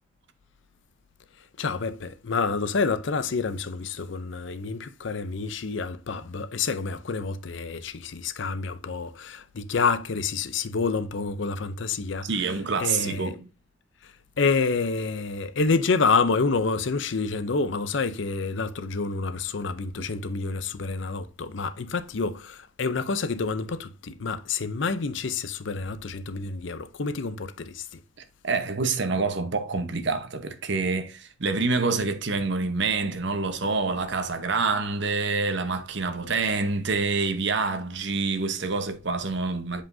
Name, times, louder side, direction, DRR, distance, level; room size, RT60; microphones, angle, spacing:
voice 1, 1.6-12.3 12.8-13.4 14.4-27.8, left 4 dB, 60° left, 0.6 m, -28 dB
voice 2, 12.2-13.5 28.4-39.8, right 4 dB, 60° right, 1.0 m, -27 dB
7.5 x 5.1 x 2.7 m
head